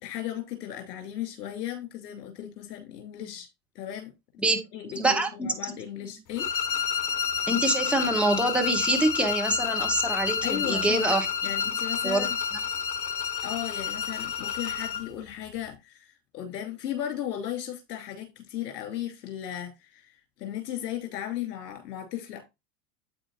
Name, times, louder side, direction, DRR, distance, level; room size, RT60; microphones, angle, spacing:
voice 1, 0.0-3.5 3.7-4.1 4.5-6.5 10.4-11.2 11.4-12.4 13.4-22.4, left 11 dB, 60° left, 2.9 m, -36 dB
voice 2, 4.9-5.5 6.0-6.2 7.5-11.3 12.0-12.3, right 2 dB, ahead, 1.7 m, -25 dB
sound 1, 6.4-15.1, left 7 dB, 40° left, 1.3 m, -29 dB
8.5 x 8.3 x 2.5 m
figure-of-eight pair, 90°, 50 cm